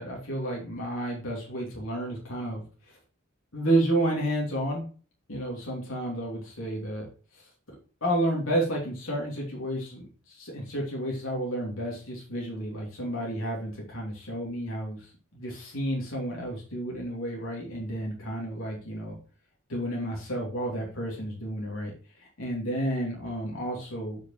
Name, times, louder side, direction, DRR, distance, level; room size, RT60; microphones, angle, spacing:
voice 1, 0.0-2.6 3.5-4.8 5.3-7.1 7.3-7.4 8.0-19.2 19.7-21.9 22.2-24.2, right 1 dB, 75° left, -2 dB, 2.9 m, -31 dB
9.2 x 5.2 x 4.8 m, 0.39 s
head